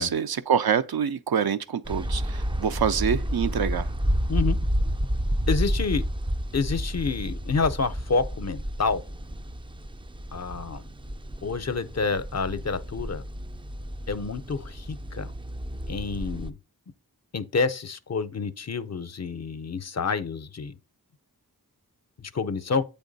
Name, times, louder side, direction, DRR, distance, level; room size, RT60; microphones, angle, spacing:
voice 1, 0.0-3.9, right 7 dB, 75° right, 0.5 m, -26 dB
sound 1, 1.8-16.5, equal, 15° right, 0.3 m, -30 dB
voice 2, 5.5-6.0 6.5-9.0 10.3-10.9 11.4-13.2 14.1-15.3 15.9-16.6 17.3-20.8 22.3-22.8, left 4 dB, 45° left, 0.5 m, -28 dB
8.0 x 3.5 x 3.9 m
wide cardioid pair, 50°, 38 cm